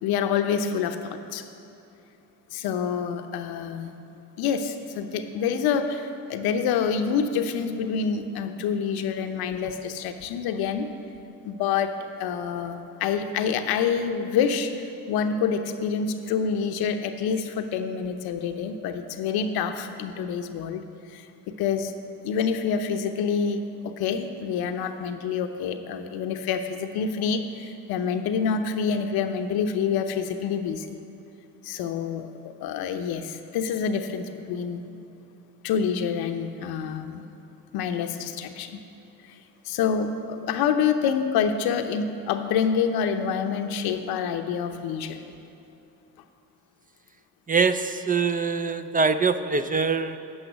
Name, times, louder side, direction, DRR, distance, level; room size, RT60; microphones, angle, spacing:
voice 1, 0.0-1.4 2.5-3.9 4.4-10.9 11.4-20.8 21.1-21.9 22.2-30.9 31.6-34.8 35.6-37.2 37.7-38.8 39.2-39.4 39.6-45.2, left 6 dB, 75° left, 8 dB, 0.8 m, -27 dB
voice 2, 47.5-50.2, right 4 dB, 25° right, 10 dB, 0.4 m, -23 dB
8.8 x 5.7 x 8.0 m, 2.8 s
supercardioid pair, 60°, 37 cm